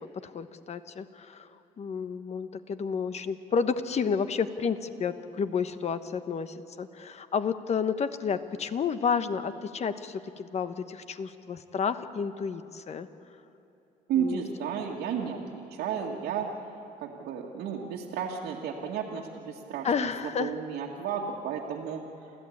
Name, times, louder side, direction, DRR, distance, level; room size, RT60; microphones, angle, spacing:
voice 1, 0.2-13.1 14.1-14.4 19.8-20.5, left 6 dB, 40° left, 11 dB, 1.1 m, -31 dB
voice 2, 14.1-16.5 17.0-20.1 20.4-22.0, right 7 dB, 80° right, -3 dB, 2.0 m, -33 dB
28.5 x 14.5 x 8.6 m, 2.9 s
cardioid pair, 110°, 17 cm